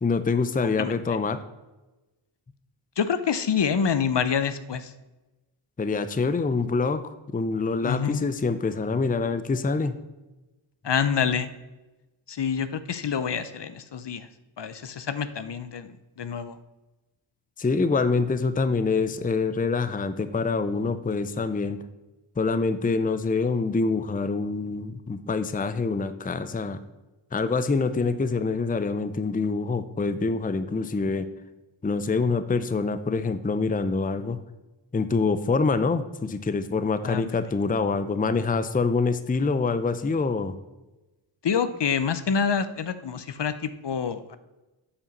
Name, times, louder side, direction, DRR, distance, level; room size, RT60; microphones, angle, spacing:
voice 1, 0.0-1.4 5.8-10.0 17.6-21.8 22.4-26.8 27.3-31.3 31.8-34.4 34.9-40.6, left 4 dB, 20° left, 12 dB, 0.5 m, -25 dB
voice 2, 0.6-0.9 3.0-4.9 7.8-8.2 10.8-11.5 12.3-14.3 14.6-16.6 37.0-37.5 41.4-44.4, left 6 dB, 60° left, 12 dB, 0.6 m, -27 dB
8.7 x 4.8 x 5.3 m, 1.1 s
cardioid pair, 45°, 48 cm